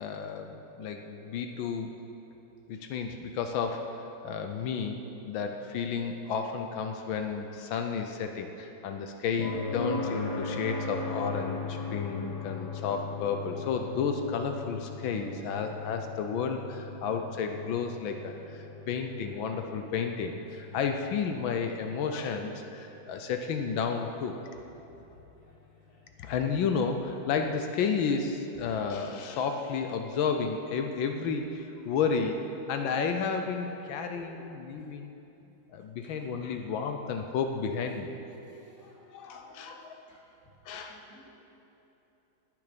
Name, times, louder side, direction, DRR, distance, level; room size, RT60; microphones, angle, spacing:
voice 1, 0.0-2.0 2.7-5.0 5.2-24.4 26.2-32.4 32.7-35.1 35.7-38.1 39.1-39.9 40.6-41.0, left 5 dB, 80° left, 5 dB, 1.5 m, -32 dB
sound 1, 9.4-23.2 25.5-25.6, left 4 dB, 55° left, 2.0 m, -38 dB
voice 2, 34.1-34.4 36.0-36.1 38.4-39.0 39.3-39.7 40.1-40.2 40.8-41.2, left 2 dB, 10° left, -5 dB, 2.3 m, -54 dB
20.0 x 7.0 x 5.1 m, 2.9 s
omnidirectional pair, 2.1 m